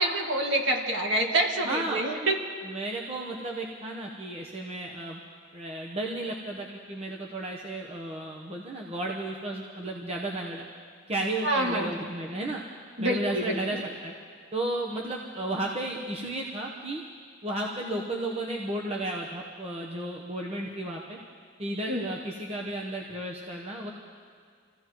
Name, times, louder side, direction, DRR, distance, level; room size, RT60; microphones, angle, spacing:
voice 1, 0.0-2.4 11.4-11.9 13.0-13.6 21.9-22.1, right 1 dB, 55° right, 0 dB, 2.0 m, -26 dB
voice 2, 1.6-2.1 2.6-5.2 5.5-10.6 11.1-12.6 13.0-14.1 14.5-17.0 17.4-21.2 21.6-23.9, right 1 dB, 30° right, -2 dB, 0.9 m, -33 dB
27.5 x 15.5 x 3.1 m, 2.1 s
head